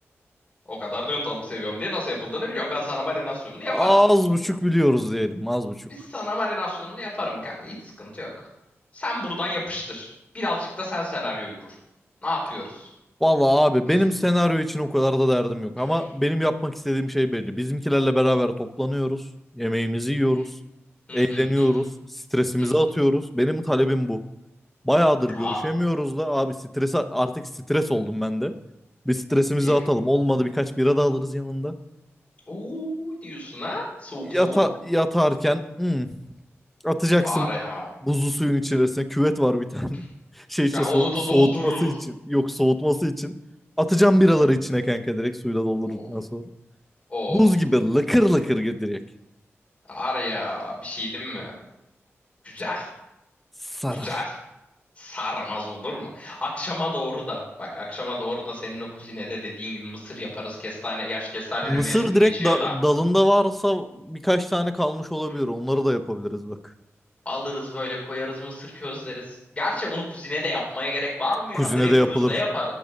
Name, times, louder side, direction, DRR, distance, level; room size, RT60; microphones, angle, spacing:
voice 1, 0.7-3.9 6.1-8.5 8.9-10.1 10.3-11.7 12.2-12.9 15.9-16.0 21.1-21.7 22.6-22.7 25.3-25.6 29.6-29.7 32.5-34.6 37.2-37.9 40.7-41.9 45.8-46.1 47.1-47.4 49.9-51.5 52.4-52.9 53.9-54.3 55.0-62.7 67.3-72.6, left 1 dB, 25° left, -4 dB, 3.9 m, -30 dB
voice 2, 3.7-5.8 13.2-19.3 19.5-20.5 21.1-21.9 22.3-24.2 24.8-28.6 29.1-31.7 34.3-36.1 36.8-37.5 38.0-40.0 40.5-42.0 42.3-43.3 43.8-46.4 47.3-49.0 53.7-54.1 61.7-66.6 71.5-72.3, equal, 5° left, 8 dB, 0.6 m, -22 dB
12.0 x 6.2 x 6.4 m, 0.91 s
wide cardioid pair, 165°, 5 cm